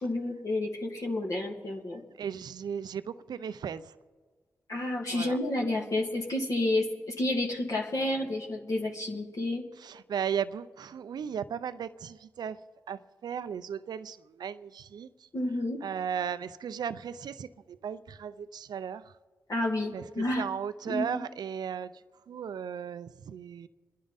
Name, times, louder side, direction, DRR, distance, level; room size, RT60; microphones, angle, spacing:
voice 1, 0.0-2.0 4.7-9.6 15.3-15.8 19.5-20.5 20.9-21.2, left 1 dB, 50° left, 2.2 m, -30 dB
voice 2, 2.2-3.9 5.1-5.4 9.8-12.6 12.9-15.1 15.8-19.1 19.9-21.9 22.3-23.7, right 8 dB, 70° right, 0.5 m, -36 dB
28.5 x 10.5 x 4.1 m
supercardioid pair, 40°, 7 cm